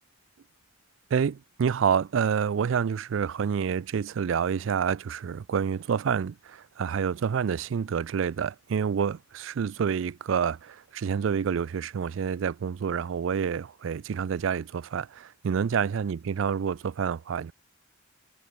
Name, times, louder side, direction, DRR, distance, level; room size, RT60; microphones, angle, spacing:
voice 1, 1.1-17.5, right 7 dB, 70° right, 0.4 m, -28 dB
head